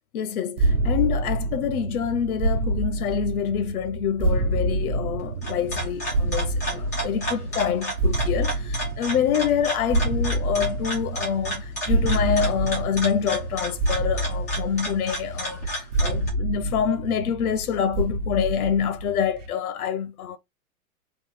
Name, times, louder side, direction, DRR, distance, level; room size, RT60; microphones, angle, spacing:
voice 1, 0.1-20.4, left 8 dB, 75° left, 0.9 m, -26 dB
sound 1, 0.6-19.5, right 1 dB, 55° right, 1.0 m, -27 dB
sound 2, 5.2-16.3, equal, 10° left, 0.4 m, -32 dB
3.9 x 2.8 x 4.2 m
supercardioid pair, 180°, 44 cm